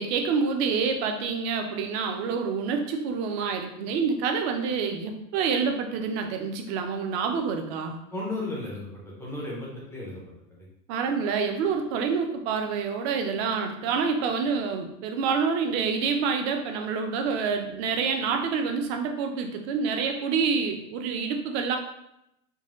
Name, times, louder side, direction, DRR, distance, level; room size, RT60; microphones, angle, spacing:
voice 1, 0.0-8.0 10.9-21.8, right 5 dB, 40° right, 4 dB, 0.6 m, -27 dB
voice 2, 8.1-10.2 10.6-10.7, left 2 dB, 5° left, -5 dB, 0.5 m, -34 dB
4.0 x 2.2 x 3.6 m, 0.81 s
hypercardioid pair, 125°, 49 cm